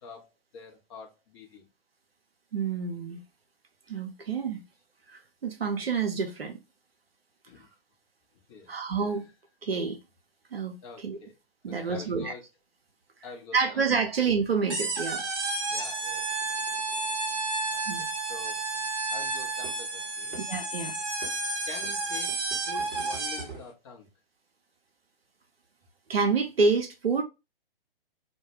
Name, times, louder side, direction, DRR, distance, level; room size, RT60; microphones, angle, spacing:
voice 1, 0.0-1.6 7.5-7.7 8.5-8.7 9.0-9.3 10.8-11.4 11.7-12.5 13.2-13.8 15.7-16.3 17.4-18.6 19.1-20.4 21.6-24.1, left 5 dB, 30° left, 0.7 m, -46 dB
voice 2, 2.5-3.2 3.9-4.6 5.1-6.6 8.7-9.3 9.6-10.0 10.5-11.2 11.6-12.3 13.5-15.2 17.9-18.1 20.5-20.9 26.1-27.2, right 5 dB, 80° right, 0.5 m, -28 dB
sound 1, 14.7-23.6, right 3 dB, 25° right, 0.7 m, -31 dB
2.1 x 2.1 x 2.8 m
figure-of-eight pair, 120°, 29 cm